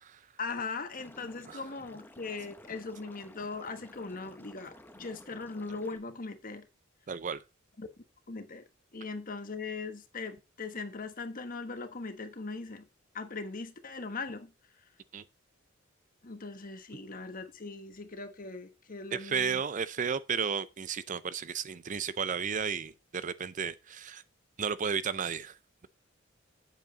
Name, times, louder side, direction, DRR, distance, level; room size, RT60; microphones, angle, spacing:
voice 1, 0.4-6.6 7.8-7.9 8.3-8.6 8.9-12.9 13.1-14.5 16.2-19.6, left 3 dB, 45° left, 1.3 m, -40 dB
Liquid, 1.0-6.0, left 1 dB, 10° left, 1.0 m, -53 dB
voice 2, 7.1-7.4 15.1-15.2 19.1-24.2 24.6-25.6, right 6 dB, 40° right, 0.5 m, -33 dB
7.9 x 7.3 x 4.0 m
head